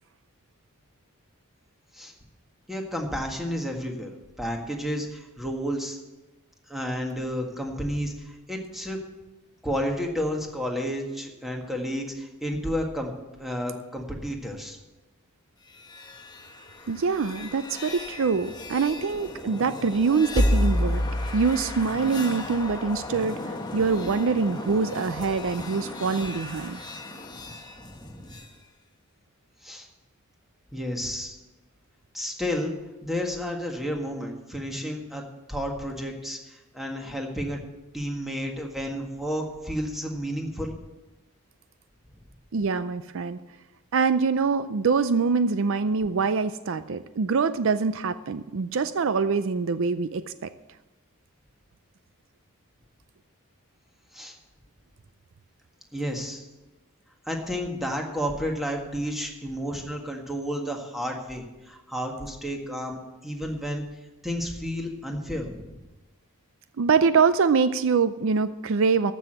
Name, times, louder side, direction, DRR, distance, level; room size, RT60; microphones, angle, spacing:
voice 1, 2.7-4.1 4.4-6.0 6.7-9.0 9.6-13.1 13.4-14.8 27.3-28.4 29.6-29.9 30.7-31.4 32.1-32.7 33.0-35.2 35.5-37.6 37.9-40.7 54.1-54.3 55.9-56.4 57.2-63.8 64.2-65.8, equal, ahead, 1 dB, 1.7 m, -31 dB
sound 1, 15.7-28.5, left 1 dB, 20° left, 1.1 m, -32 dB
voice 2, 16.9-21.0 21.3-26.8 42.5-43.4 43.9-50.5 66.8-69.1, right 5 dB, 65° right, 13 dB, 0.5 m, -24 dB
14.5 x 6.3 x 7.8 m, 1.1 s
head